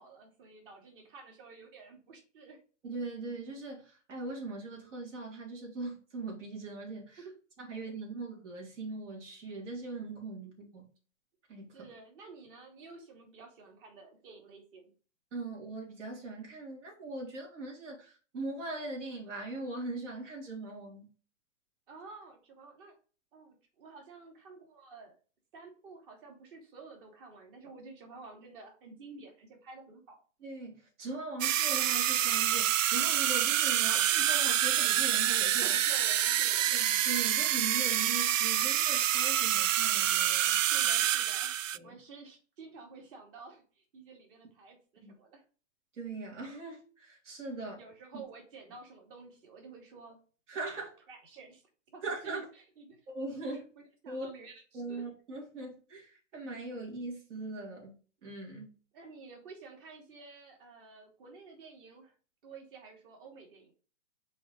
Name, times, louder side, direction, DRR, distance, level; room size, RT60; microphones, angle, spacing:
voice 1, 0.0-2.6 7.2-7.3 11.7-14.9 21.9-22.9 23.3-25.1 25.5-30.2 35.6-36.7 40.6-41.5 41.8-45.4 47.8-50.2 50.7-50.8 51.1-51.6 51.9-53.0 53.5-55.0 58.9-62.1 62.4-63.7, right 4 dB, 45° right, 2.8 m, -51 dB
voice 2, 2.8-7.2 7.6-10.9 11.5-11.9 15.3-21.1 30.4-35.7 36.7-40.6 41.7-42.0 45.0-45.1 46.0-47.8 50.5-50.9 52.0-52.4 53.1-53.7 54.1-54.3 54.7-58.0 58.2-58.7, right 2 dB, 70° right, 3.9 m, -40 dB
sound 1, 31.4-41.8, right 11 dB, 85° right, 0.5 m, -27 dB
6.4 x 4.2 x 5.2 m
hypercardioid pair, 155°, 38 cm